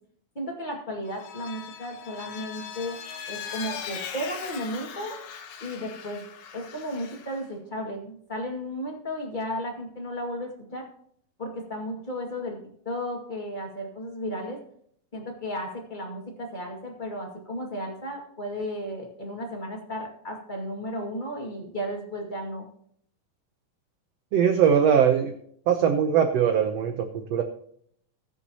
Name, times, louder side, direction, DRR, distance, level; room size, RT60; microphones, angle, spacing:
voice 1, 0.3-3.0 3.3-5.2 5.6-6.2 6.5-10.9 11.4-12.6 12.8-14.6 15.1-22.7, equal, 20° left, 0 dB, 1.5 m, -34 dB
Vehicle, 1.1-7.4, left 7 dB, 75° left, 2.9 m, -40 dB
voice 2, 24.3-25.3 25.7-27.4, right 8 dB, 90° right, 6 dB, 1.4 m, -21 dB
21.0 x 7.2 x 2.9 m, 0.65 s
omnidirectional pair, 4.1 m